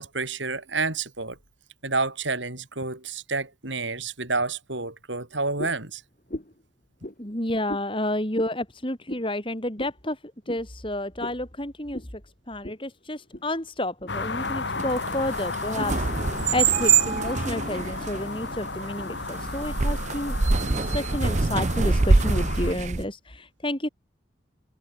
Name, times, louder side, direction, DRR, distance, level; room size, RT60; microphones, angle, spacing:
voice 1, 0.0-1.4 1.8-6.0, right 3 dB, 80° right, 6.3 m, -29 dB
sound 1, 5.6-5.9 6.3-6.6 7.0-7.2 7.7-7.9 8.3-8.5 9.1-9.3 9.8-10.0 10.5-10.6 11.2-11.4 11.9-12.1 12.6-12.8 13.1-13.5 14.0-14.1 14.7-14.9, left 1 dB, 40° left, 2.6 m, -37 dB
voice 2, 7.2-10.2 10.5-12.1 12.5-20.4 20.8-23.9, left 1 dB, 25° left, 4.1 m, -30 dB
sound 2, 14.1-22.7, left 4 dB, 70° left, 1.8 m, -34 dB
sound 3, 14.4-23.0, right 4 dB, 40° right, 0.7 m, -25 dB
open air
head